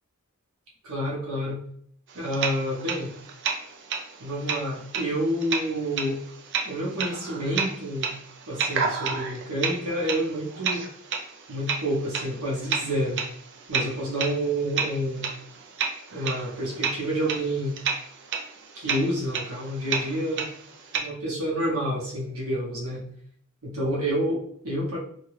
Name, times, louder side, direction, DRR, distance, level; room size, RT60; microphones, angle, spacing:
voice 1, 0.8-1.6 2.1-3.1 4.2-6.2 6.6-8.2 8.5-10.9 11.5-13.2 13.7-15.3 16.1-17.8 18.7-20.5 20.9-23.0 23.6-25.0, equal, 75° right, -5 dB, 0.9 m, -29 dB
sound 1, 2.1-21.0, right 5 dB, 55° right, 0.4 m, -31 dB
2.8 x 2.2 x 3.1 m, 0.62 s
head